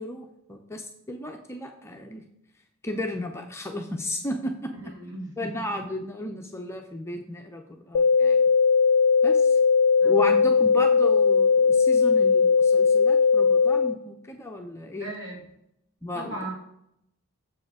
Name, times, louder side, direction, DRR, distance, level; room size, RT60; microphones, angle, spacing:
voice 1, 0.0-2.3 2.8-4.7 5.4-8.4 9.2-9.6 10.0-15.1 16.0-16.4, left 1 dB, 10° left, 2 dB, 0.5 m, -34 dB
voice 2, 4.7-5.7 10.0-10.4 15.0-15.4 16.1-16.5, right 1 dB, 55° right, 0 dB, 1.9 m, -37 dB
broadcast stopping, 7.9-13.9, left 5 dB, 70° left, 0.3 m, -19 dB
7.0 x 4.8 x 4.8 m, 0.78 s
head